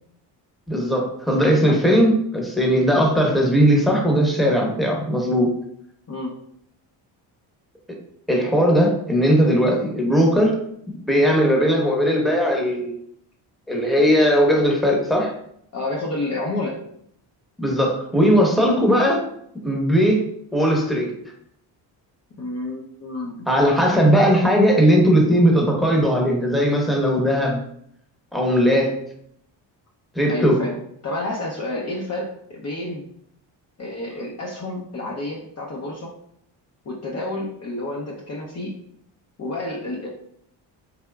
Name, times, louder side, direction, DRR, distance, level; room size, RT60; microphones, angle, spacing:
voice 1, 0.7-5.5 8.3-10.5 11.1-12.9 13.7-15.3 17.6-19.2 19.6-21.1 23.5-27.6 28.3-29.0 30.1-30.6, equal, ahead, -1 dB, 0.9 m, -18 dB
voice 2, 15.7-16.8 22.4-23.5 30.3-30.8 31.0-33.1 33.8-36.1 36.9-38.7 39.4-40.1, left 2 dB, 35° left, -2 dB, 0.6 m, -29 dB
3.5 x 2.7 x 2.3 m, 0.71 s
supercardioid pair, 65°, 49 cm